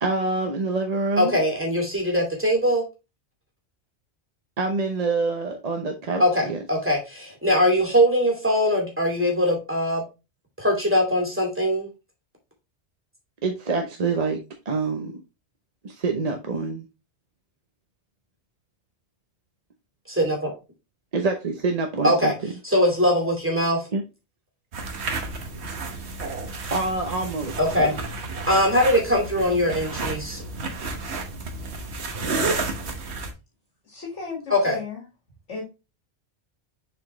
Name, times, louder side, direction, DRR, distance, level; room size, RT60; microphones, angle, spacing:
voice 1, 0.0-1.4 4.6-6.6 13.4-14.4 14.7-15.2 15.8-16.8 21.1-22.3 23.9-24.0 26.7-28.0, right 3 dB, 40° right, 0.8 m, -26 dB
voice 2, 1.2-2.8 6.2-10.0 10.6-11.9 20.1-20.5 22.0-22.3 22.6-23.8 27.6-30.4 34.5-34.8, equal, 10° right, 2.5 m, -22 dB
sound 1, 24.7-33.3, right 3 dB, 70° right, 1.3 m, -31 dB
voice 3, 33.9-35.0 35.5-35.6, left 4 dB, 90° left, 2.1 m, -35 dB
6.9 x 4.5 x 3.1 m
omnidirectional pair, 1.2 m